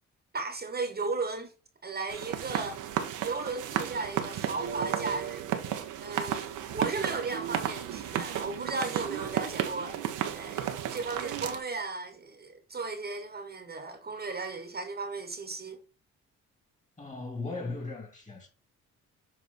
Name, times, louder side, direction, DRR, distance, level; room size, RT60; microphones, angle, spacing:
voice 1, 0.3-1.5 1.8-2.8 3.2-5.4 6.0-10.0 10.3-15.8, right 3 dB, 30° right, 1.2 m, -35 dB
sound 1, 2.1-11.6, right 10 dB, 85° right, 1.0 m, -33 dB
voice 2, 17.0-18.5, left 3 dB, 25° left, 2.4 m, -37 dB
7.7 x 3.3 x 4.4 m
cardioid pair, 90°, 30 cm